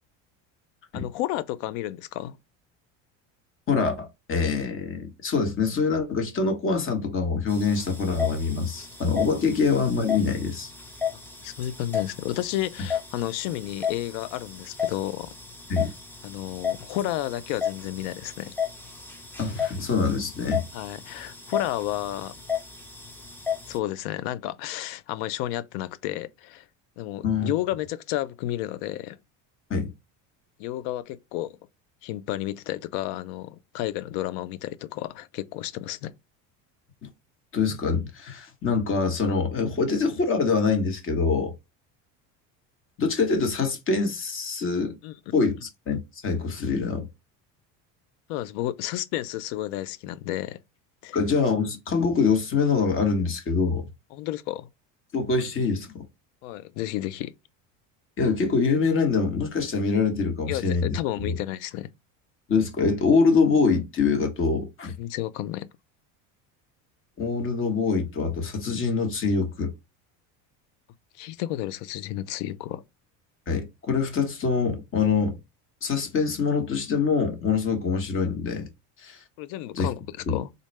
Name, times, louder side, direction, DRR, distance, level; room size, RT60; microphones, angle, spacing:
voice 1, 0.9-2.4 9.5-9.6 11.4-15.4 16.2-18.5 20.7-22.4 23.7-26.7 27.0-29.2 30.6-31.6 32.0-36.1 45.0-45.1 48.3-50.6 51.0-51.2 54.1-54.7 56.4-57.3 60.5-61.9 65.0-65.7 71.1-72.8 79.4-80.5, left 14 dB, 75° left, 0.5 m, -31 dB
voice 2, 3.7-10.7 15.7-15.9 19.4-20.6 27.2-27.5 29.7-29.9 37.5-41.5 43.0-45.0 45.3-47.1 51.1-53.8 55.1-56.0 58.2-61.0 61.3-61.4 62.5-64.9 67.2-69.7 73.5-75.4 75.8-78.7 79.0-79.2 79.7-79.9 80.3-80.4, left 4 dB, 35° left, 1.1 m, -24 dB
sound 1, 7.5-23.8, left 7 dB, 5° left, 0.6 m, -34 dB
3.9 x 2.1 x 3.1 m
cardioid pair, 130°, 38 cm